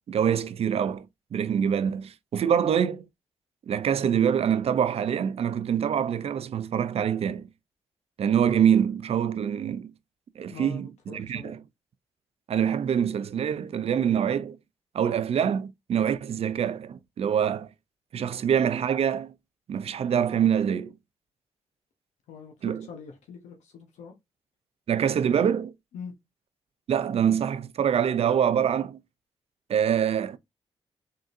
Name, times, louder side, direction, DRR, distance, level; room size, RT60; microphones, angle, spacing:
voice 1, 0.1-1.1 1.3-3.0 3.7-7.5 8.2-9.9 10.4-11.6 12.5-14.6 14.9-17.7 18.1-19.3 19.7-20.9 22.6-22.8 24.9-25.7 26.9-29.0 29.7-30.4, right 8 dB, 60° right, 0.5 m, -25 dB
voice 2, 10.5-11.5 22.3-24.1 25.9-26.1, left 6 dB, 85° left, 0.9 m, -44 dB
3.9 x 3.7 x 2.6 m
supercardioid pair, 50°, 12 cm